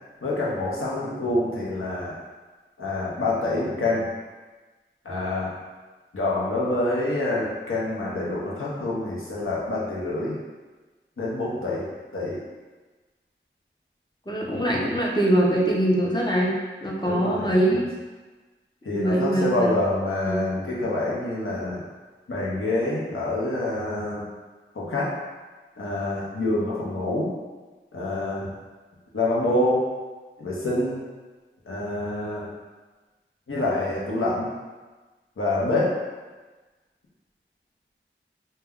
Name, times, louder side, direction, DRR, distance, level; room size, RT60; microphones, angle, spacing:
voice 1, 0.2-2.2 2.8-4.1 5.0-5.5 6.1-10.4 11.2-12.4 17.1-17.8 18.8-21.8 22.3-24.2 24.7-25.1 25.8-27.3 27.9-28.5 29.1-29.9 30.4-31.0 31.7-32.5 33.5-34.5 35.4-35.9, left 2 dB, 85° left, -6 dB, 0.7 m, -26 dB
voice 2, 14.3-16.5 16.8-17.8 18.9-19.8 20.2-20.4, right 1 dB, 20° left, -3 dB, 0.5 m, -23 dB
2.2 x 2.1 x 3.5 m, 1.3 s
wide cardioid pair, 40°, 21 cm